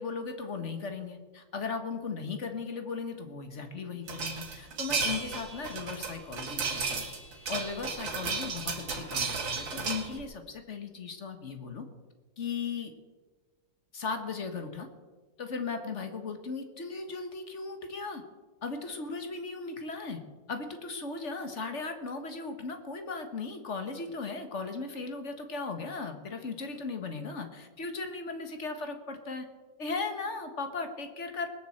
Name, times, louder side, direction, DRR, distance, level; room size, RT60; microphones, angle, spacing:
voice 1, 0.0-7.1 7.5-11.9 12.4-12.9 13.9-14.9 15.4-18.2 18.6-20.2 20.5-29.5 29.8-31.5, left 4 dB, 40° left, 7 dB, 1.6 m, -37 dB
sound 1, 4.1-10.2, right 4 dB, 85° right, 2.6 m, -34 dB
20.0 x 6.8 x 7.8 m, 1.3 s
omnidirectional pair, 2.0 m